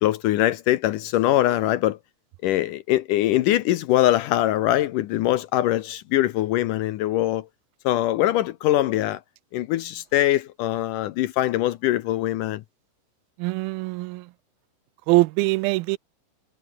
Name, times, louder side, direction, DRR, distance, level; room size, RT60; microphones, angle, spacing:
voice 1, 0.0-2.0 2.4-7.5 7.8-9.2 9.5-12.6, left 14 dB, 75° left, 2.1 m, -22 dB
voice 2, 13.4-14.2 15.1-16.0, right 21 dB, 85° right, 2.4 m, -22 dB
omnidirectional pair, 4.3 m